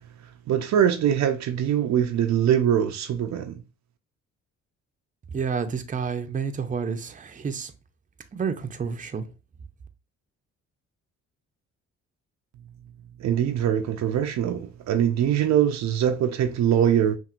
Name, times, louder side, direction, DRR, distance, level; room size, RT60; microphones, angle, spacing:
voice 1, 0.5-3.6 13.2-17.2, right 9 dB, 65° right, 0.5 m, -23 dB
voice 2, 5.3-7.7 8.3-9.3, right 6 dB, 25° right, 0.6 m, -29 dB
5.8 x 2.6 x 2.4 m
cardioid pair, 90°, 30 cm